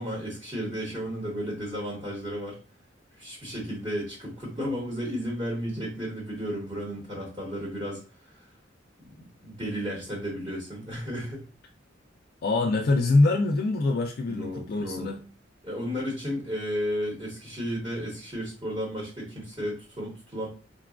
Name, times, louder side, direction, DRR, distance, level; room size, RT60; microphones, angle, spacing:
voice 1, 0.0-2.6 3.1-8.5 9.0-11.4 14.3-15.1 15.6-20.5, equal, 25° right, -5 dB, 1.1 m, -33 dB
voice 2, 12.4-15.2, left 2 dB, 50° left, 2 dB, 0.3 m, -24 dB
3.9 x 2.3 x 2.3 m, 0.35 s
head